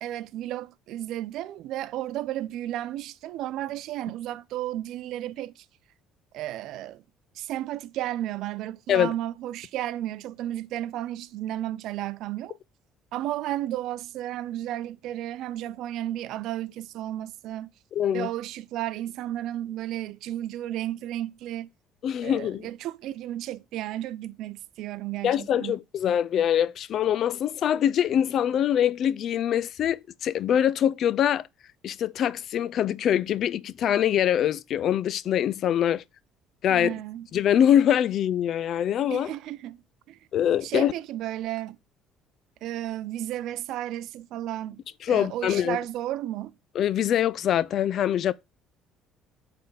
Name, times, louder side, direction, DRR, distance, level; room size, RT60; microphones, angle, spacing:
voice 1, 0.0-5.7 6.3-7.0 7.3-12.6 13.1-17.7 18.1-21.7 22.2-25.8 36.7-37.3 39.1-40.2 40.6-41.8 42.6-46.6, right 13 dB, 70° right, 0.4 m, -33 dB
voice 2, 18.0-18.3 22.0-22.7 25.2-31.5 31.8-36.0 36.6-36.9 37.3-39.3 40.3-40.9 45.0-45.8 46.8-48.3, left 10 dB, 60° left, 0.3 m, -24 dB
8.3 x 3.6 x 3.8 m
supercardioid pair, 85°, 0 cm